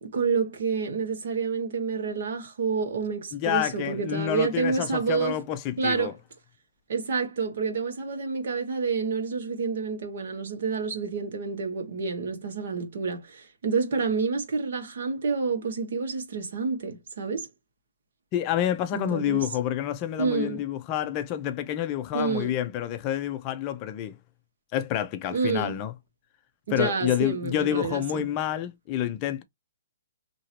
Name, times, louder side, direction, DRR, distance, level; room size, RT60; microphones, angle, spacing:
voice 1, 0.0-5.4 5.8-6.1 6.9-17.5 18.9-19.5 20.2-20.6 22.1-22.5 25.3-25.8 26.7-28.3, right 5 dB, 65° right, 1.3 m, -28 dB
voice 2, 3.3-6.1 18.3-24.2 24.7-25.9 26.7-29.4, left 11 dB, 25° left, 0.5 m, -28 dB
3.0 x 2.6 x 2.8 m
hypercardioid pair, 160°, 0 cm